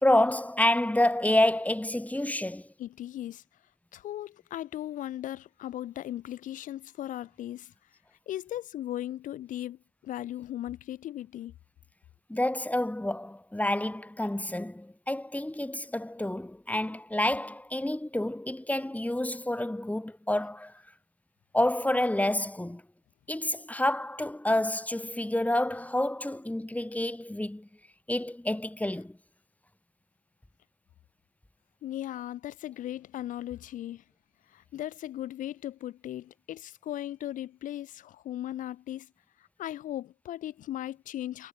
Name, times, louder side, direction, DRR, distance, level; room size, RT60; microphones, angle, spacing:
voice 1, 0.0-2.7 12.3-20.7 21.5-22.8 23.3-27.7 28.1-29.2, left 1 dB, 10° left, 2.3 m, -28 dB
voice 2, 2.8-3.4 3.9-7.7 8.3-11.5 31.8-34.0 34.5-39.1 39.6-41.5, left 12 dB, 80° left, 3.6 m, -37 dB
supercardioid pair, 40°, 13 cm